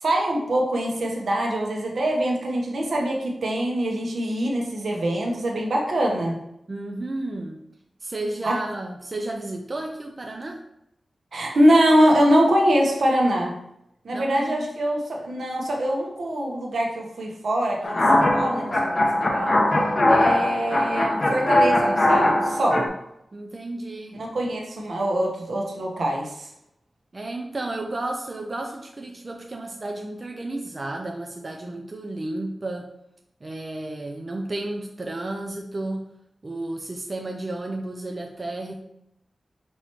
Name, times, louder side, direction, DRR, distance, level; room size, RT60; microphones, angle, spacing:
voice 1, 0.0-6.4 8.4-8.6 11.3-13.6 14.0-19.7 20.1-22.9 24.2-26.5, equal, 75° right, 0 dB, 0.9 m, -23 dB
voice 2, 6.7-7.6 8.0-10.6 14.1-14.7 23.3-24.2 27.1-32.9 33.4-36.1 36.4-38.7, right 2 dB, 35° right, 1 dB, 0.4 m, -32 dB
sound 1, 17.8-22.9, left 1 dB, 35° left, 0.8 m, -20 dB
5.5 x 3.0 x 3.0 m, 0.80 s
wide cardioid pair, 120°, 0 cm